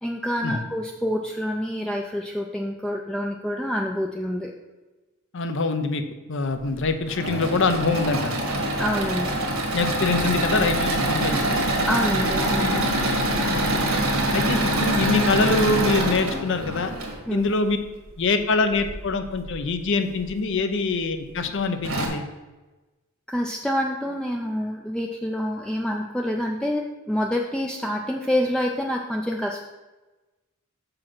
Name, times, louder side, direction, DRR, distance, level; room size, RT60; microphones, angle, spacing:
voice 1, 0.0-4.5 8.8-9.3 11.9-12.8 17.3-17.5 23.3-29.6, equal, 5° left, 0 dB, 0.4 m, -27 dB
voice 2, 5.3-6.0 6.3-8.4 9.7-11.6 13.5-13.6 14.3-16.9 17.3-17.8 18.2-22.3, left 3 dB, 60° left, 8 dB, 0.7 m, -24 dB
Engine / Mechanisms, 6.9-17.2 18.8-19.5 20.1-20.2 20.5-20.6 21.4-21.5 21.8-22.1, right 1 dB, 70° right, 1.5 m, -24 dB
6.1 x 4.8 x 6.1 m, 1.2 s
head